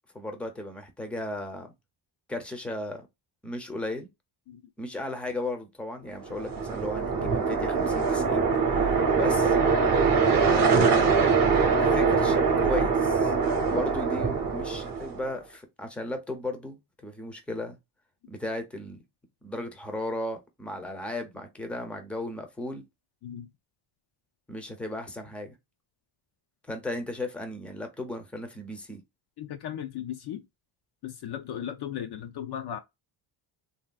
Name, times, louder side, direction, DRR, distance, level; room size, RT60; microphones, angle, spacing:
voice 1, 0.1-1.7 2.3-3.1 3.4-4.1 4.8-8.5 8.7-9.6 10.5-11.1 11.8-13.3 13.7-17.8 18.3-19.0 19.4-22.8 24.5-25.5 26.7-29.0, left 1 dB, ahead, 0.6 m, -35 dB
sound 1, 6.2-15.3, right 5 dB, 45° right, 0.9 m, -23 dB
voice 2, 29.4-30.4 31.0-32.8, left 10 dB, 55° left, 0.5 m, -36 dB
3.1 x 2.7 x 2.3 m
cardioid pair, 130°, 50 cm